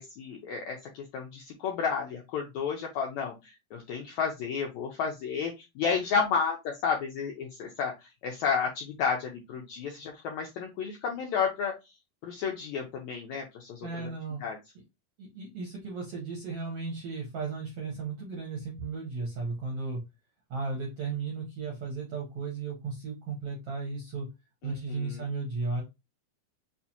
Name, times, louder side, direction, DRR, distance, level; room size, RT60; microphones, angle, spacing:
voice 1, 0.0-11.9 12.2-14.1 14.4-14.6 24.6-25.3, left 6 dB, 80° left, 1 dB, 1.6 m, -32 dB
voice 2, 13.8-14.4 15.2-20.0 20.5-24.3 24.6-25.8, right 4 dB, 70° right, -2 dB, 1.4 m, -35 dB
5.7 x 2.5 x 2.8 m, 0.23 s
omnidirectional pair, 4.1 m